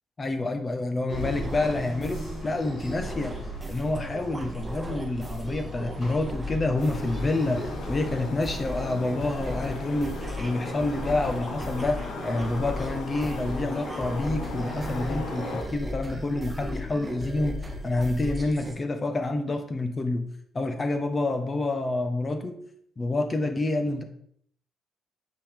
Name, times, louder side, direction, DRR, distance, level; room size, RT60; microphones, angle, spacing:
voice 1, 0.2-3.4 3.7-20.2 20.5-22.6 23.0-24.0, left 2 dB, 30° left, 7 dB, 1.1 m, -28 dB
sound 1, 1.1-8.6, left 1 dB, 55° left, 3.0 m, -41 dB
sound 2, 1.1-18.8, equal, 20° right, 1.2 m, -36 dB
sound 3, 6.8-15.6, left 2 dB, 75° left, 1.5 m, -37 dB
8.4 x 5.5 x 3.5 m, 0.67 s
cardioid pair, 90°, 0 cm